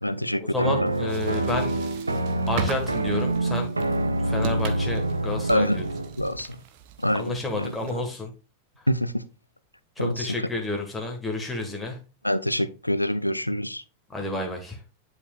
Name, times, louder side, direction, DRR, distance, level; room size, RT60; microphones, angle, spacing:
voice 1, 0.0-0.9 5.5-5.8 6.2-6.6 7.0-8.0 8.9-9.2 10.0-10.3 12.2-13.8, equal, 85° left, 14 dB, 0.5 m, -26 dB
voice 2, 0.5-1.8 2.5-3.7 4.2-5.8 7.1-8.3 10.0-12.0 14.1-14.8, left 2 dB, 5° left, 1 dB, 1.6 m, -30 dB
sound 1, 0.6-6.2, right 2 dB, 80° right, 0.7 m, -26 dB
sound 2, 0.9-8.2, right 7 dB, 50° right, 1.0 m, -40 dB
10.5 x 4.9 x 2.4 m, 0.31 s
figure-of-eight pair, 90°, 0 cm